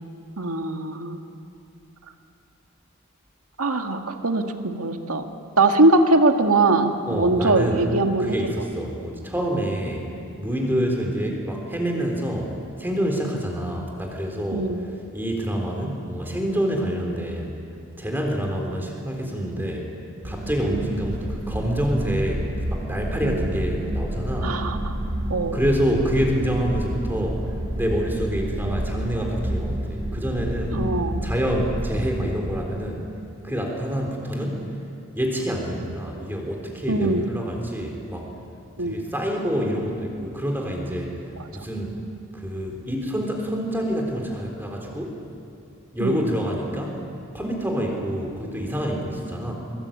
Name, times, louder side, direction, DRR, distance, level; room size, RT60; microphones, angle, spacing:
voice 1, 0.4-1.2 3.6-5.2 5.6-8.3 14.5-14.8 20.6-20.8 23.2-23.5 24.4-25.0 25.3-25.6 30.7-31.2 36.9-37.2 38.8-39.0 41.3-41.6 46.0-46.2, right 2 dB, 85° right, 5 dB, 2.0 m, -22 dB
voice 2, 7.1-7.8 8.2-10.1 10.4-14.7 15.1-17.6 18.0-19.9 20.2-24.6 25.5-30.8 31.2-33.1 33.4-34.7 35.1-38.3 38.8-42.0 42.3-45.2 45.9-47.0 47.3-49.5, equal, 10° right, 1 dB, 3.8 m, -27 dB
sound 1, 20.2-32.6, right 1 dB, 70° right, 3.0 m, -29 dB
23.5 x 23.5 x 8.8 m, 2.5 s
head